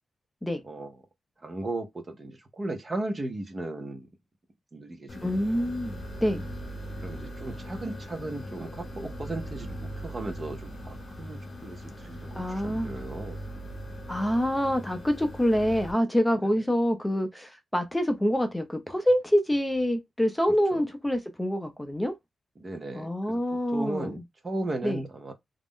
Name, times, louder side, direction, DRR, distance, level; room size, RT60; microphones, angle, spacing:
voice 1, 1.4-4.1 4.7-5.7 7.0-13.4 16.4-16.5 20.5-20.8 22.6-23.4 23.7-25.3, right 2 dB, 35° right, 0.7 m, -36 dB
sound 1, 5.1-15.9, equal, 55° left, 0.9 m, -40 dB
voice 2, 5.2-6.4 12.4-12.9 14.1-22.1 22.9-24.1 24.8-25.0, equal, 10° left, 0.4 m, -26 dB
2.4 x 2.0 x 3.6 m
wide cardioid pair, 105°, 0 cm